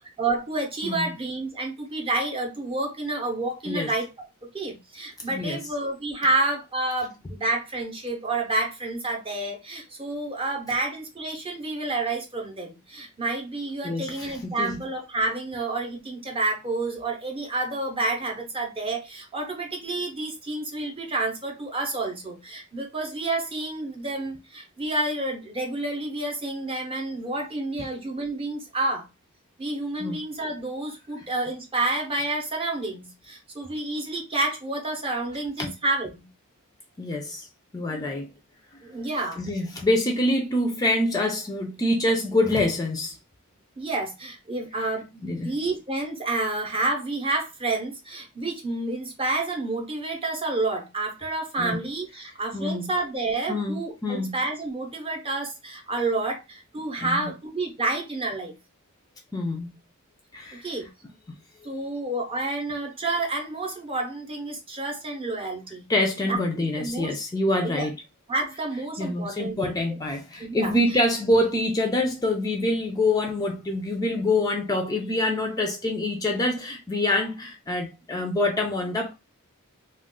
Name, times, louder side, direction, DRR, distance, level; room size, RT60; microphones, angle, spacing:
voice 1, 0.2-4.1 4.4-29.1 29.6-36.3 38.8-39.4 43.8-58.5 60.6-60.9 61.6-65.9 66.3-67.1 67.6-67.9 68.3-69.8 70.4-70.8, right 2 dB, 25° right, 0.7 m, -29 dB
voice 2, 0.8-1.1 3.7-3.9 5.3-5.6 13.8-14.8 30.0-30.2 35.6-35.7 37.0-37.5 37.7-38.3 39.4-43.2 45.2-45.5 51.6-51.8 52.2-52.9 53.5-54.4 57.0-57.3 59.3-59.7 60.3-60.7 65.9-68.0 69.0-79.1, left 1 dB, 15° left, 0.4 m, -26 dB
2.3 x 2.3 x 3.6 m
head